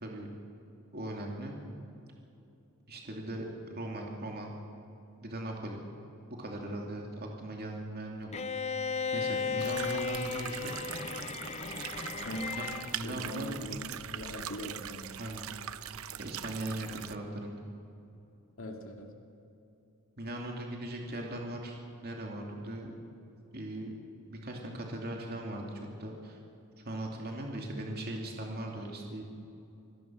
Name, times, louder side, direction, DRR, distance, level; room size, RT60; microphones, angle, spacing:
voice 1, 0.9-1.6 2.9-3.5 3.7-4.5 5.2-5.8 6.3-8.3 9.1-10.8 12.6-12.7 12.9-13.5 15.2-15.4 16.2-17.6 20.2-22.9 23.5-24.0 24.3-26.4 26.8-29.2, right 1 dB, 45° right, 0 dB, 2.7 m, -39 dB
Bowed string instrument, 8.3-13.0, left 5 dB, 30° left, 0.5 m, -35 dB
Water Stream (Looped), 9.6-17.1, right 10 dB, 70° right, 0.7 m, -42 dB
voice 2, 12.2-12.6 13.0-13.9 14.1-15.1 18.6-19.1, left 1 dB, 65° left, 2 dB, 2.3 m, -41 dB
25.5 x 18.0 x 6.3 m, 2.8 s
head